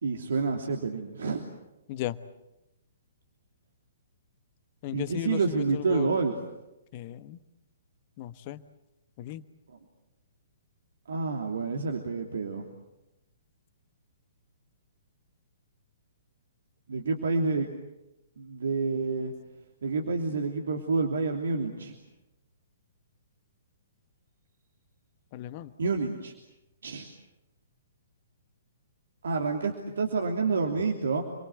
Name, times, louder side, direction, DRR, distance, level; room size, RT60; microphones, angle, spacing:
voice 1, 0.0-1.4 4.9-6.4 11.1-12.7 16.9-17.7 18.4-19.3 19.8-22.0 25.8-26.3 26.8-27.1 29.2-31.2, right 4 dB, 60° right, 2 dB, 3.0 m, -28 dB
voice 2, 4.8-6.2 6.9-7.4 8.2-8.6 9.2-9.4 25.3-25.7, left 14 dB, 35° left, 12 dB, 1.3 m, -36 dB
29.0 x 23.0 x 8.0 m, 0.93 s
figure-of-eight pair, 120°, 0 cm